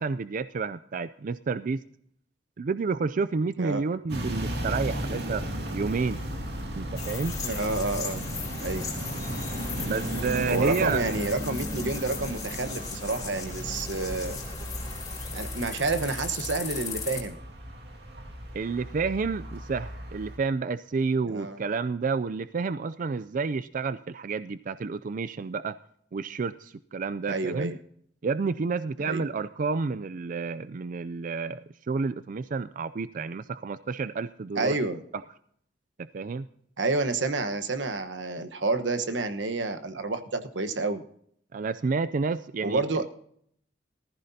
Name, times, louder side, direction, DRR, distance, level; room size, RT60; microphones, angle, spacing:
voice 1, 0.0-1.8 2.6-5.4 5.7-6.2 6.7-7.4 9.8-11.1 18.5-25.8 26.1-27.7 28.2-34.7 36.1-36.5 41.5-43.0, right 4 dB, 45° right, 14 dB, 0.4 m, -30 dB
sound 1, 4.1-20.4, equal, 65° right, 2.4 m, -35 dB
sound 2, 7.0-17.2, left 4 dB, 20° left, 3.6 m, -37 dB
voice 2, 7.4-8.2 8.6-8.9 10.5-14.4 15.3-17.4 21.3-21.6 27.3-27.8 29.0-29.2 34.6-35.0 36.8-41.0 42.6-43.1, right 3 dB, 90° right, 9 dB, 1.2 m, -29 dB
19.5 x 14.0 x 2.8 m, 0.67 s
head